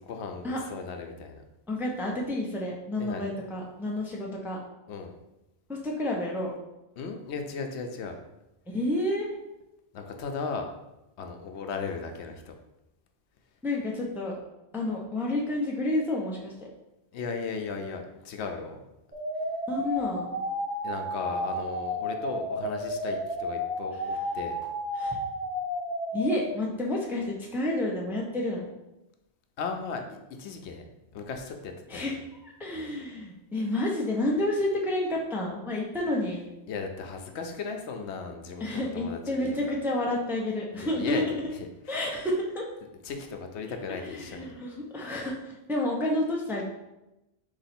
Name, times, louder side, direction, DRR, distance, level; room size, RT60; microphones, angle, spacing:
voice 1, 0.0-1.4 3.0-3.4 4.9-5.1 7.0-8.2 9.9-10.7 11.2-12.5 17.1-18.8 20.8-24.6 29.6-30.9 31.1-32.1 32.7-33.0 36.7-39.6 40.7-41.2 41.6-42.0 43.0-44.5, left 5 dB, 80° left, 4 dB, 0.9 m, -36 dB
voice 2, 1.7-4.6 5.7-6.5 8.7-9.3 13.6-14.4 14.7-16.7 19.7-20.4 24.1-24.2 24.9-25.2 26.1-28.7 31.9-36.5 38.6-41.2 41.9-42.6 44.0-46.6, left 1 dB, 5° right, -2 dB, 0.5 m, -30 dB
sound 1, 19.1-26.5, left 1 dB, 25° left, 1.6 m, -32 dB
3.9 x 2.9 x 4.2 m, 0.94 s
omnidirectional pair, 1.1 m